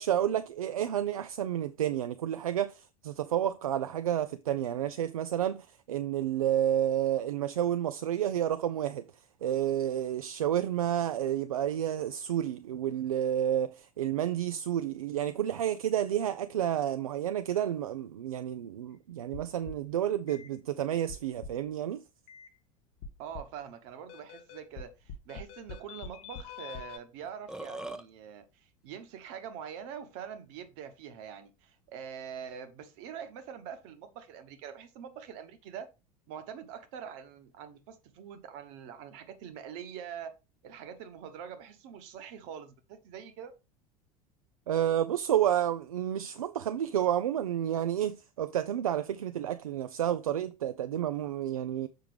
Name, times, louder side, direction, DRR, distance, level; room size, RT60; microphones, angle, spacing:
voice 1, 0.0-9.0 9.4-22.0 44.7-51.9, right 11 dB, 75° right, 0.4 m, -30 dB
sound 1, 19.3-19.9 20.3-20.5 21.1-21.7 22.3-22.5 23.0-23.6 24.1-27.0, left 5 dB, 50° left, 1.0 m, -44 dB
voice 2, 23.2-35.9 36.3-40.3 40.6-43.5, right 8 dB, 55° right, 1.2 m, -44 dB
Burping eructation, 27.2-28.0, right 2 dB, 5° right, 0.6 m, -40 dB
6.8 x 5.7 x 3.4 m
figure-of-eight pair, 70°, 19 cm